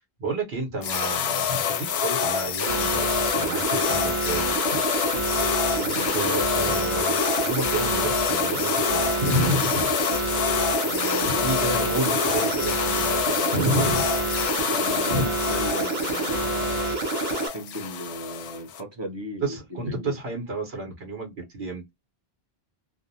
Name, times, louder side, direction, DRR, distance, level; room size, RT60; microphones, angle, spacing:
voice 1, 0.2-4.8 5.9-9.9 11.4-14.1 15.1-15.2 19.4-21.9, right 1 dB, 80° right, 1.2 m, -30 dB
sound 1, 0.8-18.8, left 8 dB, 85° left, 0.8 m, -27 dB
sound 2, 2.6-17.5, right 3 dB, 50° right, 0.9 m, -28 dB
voice 2, 5.6-6.2 10.9-11.9 14.7-16.9 17.5-20.2, equal, 35° right, 0.5 m, -37 dB
2.6 x 2.0 x 2.7 m
omnidirectional pair, 1.0 m